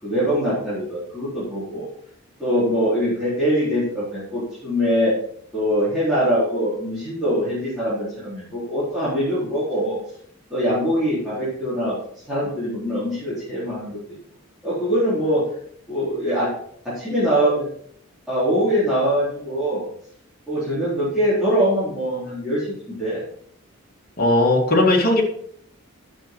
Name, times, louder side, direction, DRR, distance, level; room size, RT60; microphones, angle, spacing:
voice 1, 0.0-1.9 2.4-5.1 5.5-10.0 10.5-11.9 12.3-14.0 14.6-15.4 15.9-16.5 16.9-17.7 18.3-19.8 20.5-23.2, equal, ahead, -13 dB, 3.9 m, -23 dB
voice 2, 24.2-25.2, left 2 dB, 40° left, -1 dB, 2.1 m, -17 dB
11.0 x 6.7 x 4.5 m, 0.66 s
head